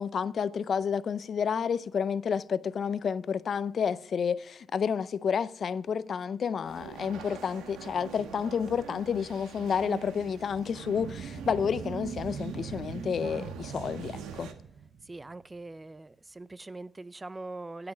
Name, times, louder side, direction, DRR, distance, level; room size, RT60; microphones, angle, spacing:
voice 1, 0.0-14.5, left 7 dB, 50° left, 0.5 m, -30 dB
sound 1, 6.6-14.5, right 7 dB, 85° right, 1.2 m, -45 dB
sound 2, 10.5-15.4, right 7 dB, 60° right, 0.6 m, -41 dB
voice 2, 15.1-17.9, right 2 dB, 20° right, 0.4 m, -42 dB
16.0 x 6.0 x 5.0 m
cardioid pair, 90°, 0 cm